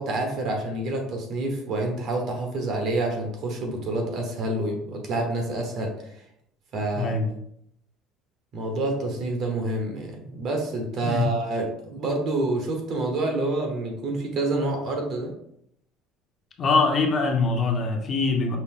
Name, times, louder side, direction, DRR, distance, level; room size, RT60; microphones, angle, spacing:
voice 1, 0.0-6.1 6.7-7.2 8.5-15.3, right 2 dB, 55° right, 2 dB, 1.2 m, -28 dB
voice 2, 7.0-7.3 11.0-11.3 16.6-18.6, left 3 dB, 35° left, 2 dB, 0.7 m, -23 dB
5.2 x 2.1 x 3.6 m, 0.72 s
cardioid pair, 125°, 0 cm